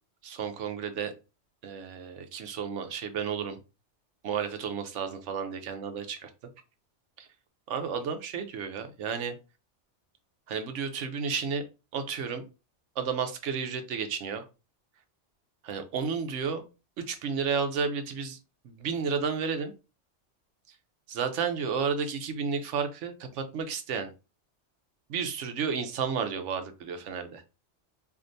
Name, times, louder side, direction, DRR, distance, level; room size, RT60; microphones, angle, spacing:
voice 1, 0.2-1.1 1.6-3.6 4.2-6.3 7.2-7.3 7.7-9.3 10.5-11.6 11.9-12.4 13.0-14.4 15.6-16.7 17.0-18.4 18.6-19.7 21.1-24.1 25.1-27.4, right 6 dB, 85° right, 7 dB, 1.0 m, -32 dB
4.7 x 2.5 x 2.6 m, 0.29 s
omnidirectional pair, 1.2 m